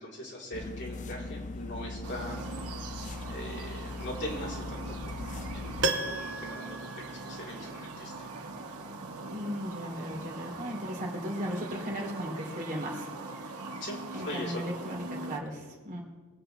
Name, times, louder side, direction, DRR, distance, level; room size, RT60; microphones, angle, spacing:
voice 1, 0.0-8.3 13.5-14.7, left 1 dB, 50° left, -4 dB, 3.7 m, -41 dB
sound 1, 0.5-5.9, left 2 dB, 35° left, 0.5 m, -40 dB
sound 2, 2.0-15.4, right 3 dB, 90° right, 1.5 m, -42 dB
Piano, 5.8-7.9 8.2-8.3, right 3 dB, 55° right, 1.0 m, -34 dB
voice 2, 9.3-13.1 14.1-16.0, equal, 35° right, -1 dB, 3.1 m, -36 dB
23.5 x 8.8 x 3.4 m, 1.4 s
head